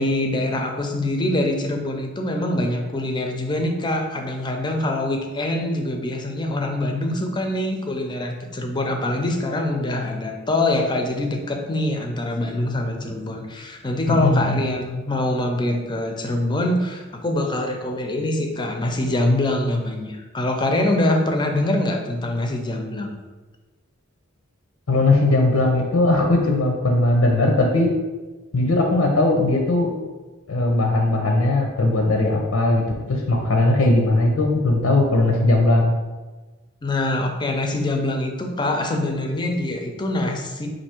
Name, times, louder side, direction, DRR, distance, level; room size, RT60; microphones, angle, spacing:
voice 1, 0.0-23.2 36.8-40.7, left 1 dB, 20° left, 3 dB, 0.5 m, -24 dB
voice 2, 14.1-14.6 24.9-27.9 28.5-29.9 30.5-32.8 33.1-35.9, left 2 dB, 90° left, 1 dB, 0.6 m, -19 dB
4.4 x 2.6 x 4.4 m, 1.2 s
head